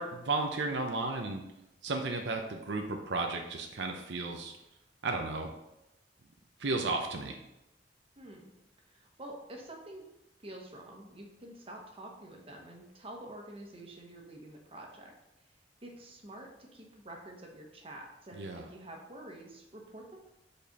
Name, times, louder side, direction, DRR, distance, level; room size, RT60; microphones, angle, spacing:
voice 1, 0.0-1.4 1.8-4.5 5.0-5.5 6.6-7.4 18.4-18.6, right 3 dB, 80° right, 3 dB, 0.7 m, -33 dB
voice 2, 8.2-8.5 8.9-10.0 10.4-15.1 15.8-20.2, right 1 dB, 35° right, 0 dB, 1.2 m, -48 dB
5.2 x 4.3 x 5.3 m, 0.89 s
head